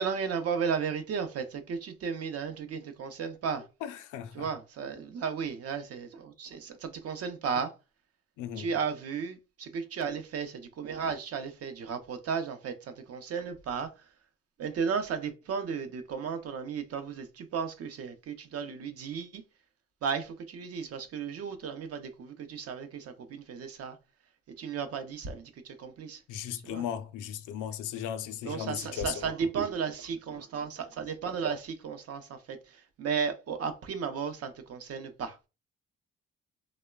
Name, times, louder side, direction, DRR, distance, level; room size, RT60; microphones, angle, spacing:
voice 1, 0.0-3.7 4.3-7.7 8.6-14.1 14.6-19.4 20.0-24.0 24.5-26.2 26.6-26.9 28.4-35.4, right 6 dB, 50° right, 0.5 m, -34 dB
voice 2, 3.8-4.5 8.4-8.7 26.3-29.3, left 10 dB, 80° left, 0.5 m, -36 dB
3.0 x 2.0 x 2.2 m
cardioid pair, 90°, 30 cm